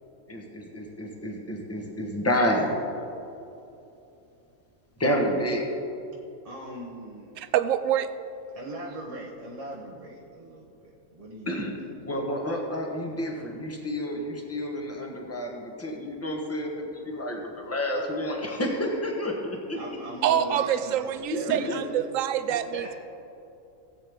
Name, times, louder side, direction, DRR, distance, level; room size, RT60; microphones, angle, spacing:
voice 1, 0.3-2.8 5.0-5.7 11.5-11.7 12.1-19.8 21.3-21.8, equal, 10° left, 1 dB, 1.1 m, -29 dB
voice 2, 6.4-7.3 8.5-12.2 19.7-22.0 22.5-23.0, right 1 dB, 30° right, -3 dB, 1.0 m, -40 dB
voice 3, 7.4-8.1 20.2-22.9, right 10 dB, 75° right, 13 dB, 0.9 m, -26 dB
16.5 x 8.5 x 3.6 m, 2.8 s
omnidirectional pair, 1.4 m